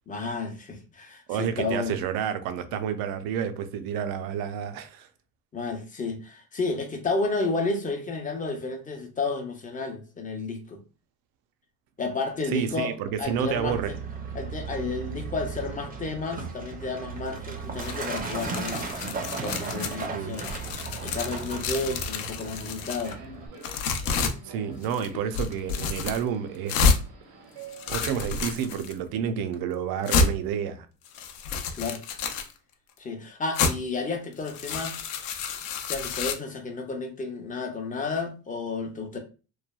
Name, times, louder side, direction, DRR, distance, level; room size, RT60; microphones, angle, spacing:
voice 1, 0.1-2.0 5.5-10.8 12.0-14.0 14.3-18.8 19.4-20.5 21.0-23.2 31.8-32.0 33.0-35.0 35.8-39.2, left 3 dB, 20° left, 0.5 m, -31 dB
voice 2, 1.3-5.1 12.5-13.9 20.1-20.3 24.4-26.9 27.9-30.9, right 8 dB, 70° right, 0.5 m, -30 dB
Truck, 13.2-23.5, right 5 dB, 25° right, 0.5 m, -36 dB
sound 1, 17.8-20.1 20.3-23.1 23.6-24.3 24.8-25.1 25.3-26.2 26.7-27.0 27.6-28.9 29.5-29.6 30.1-30.3 31.0-32.5 33.5-33.7 34.3-36.3, left 4 dB, 70° left, 0.6 m, -29 dB
Subway metro underground, 22.2-28.8, right 4 dB, 85° right, 1.0 m, -48 dB
3.1 x 2.2 x 2.2 m
cardioid pair, 110°, 36 cm